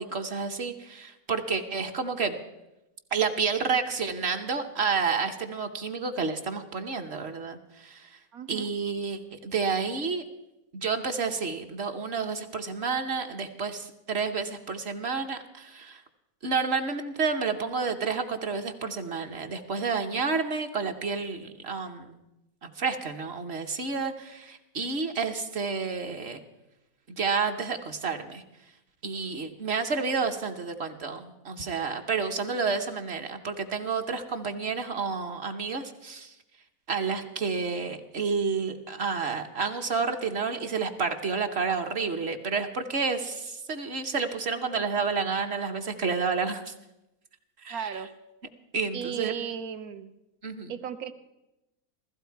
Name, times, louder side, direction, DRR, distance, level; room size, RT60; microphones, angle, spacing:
voice 1, 0.0-2.4 3.1-8.2 8.5-10.2 10.7-16.0 16.4-22.2 22.6-26.4 27.2-28.4 29.0-36.3 36.9-46.7 47.6-48.0 48.7-49.3 50.4-50.7, right 5 dB, 50° right, 6 dB, 1.1 m, -30 dB
voice 2, 8.3-8.7 47.7-48.1 48.9-50.1 50.7-51.1, right 8 dB, 75° right, 9 dB, 1.3 m, -35 dB
15.5 x 15.0 x 4.6 m, 0.92 s
omnidirectional pair, 1.6 m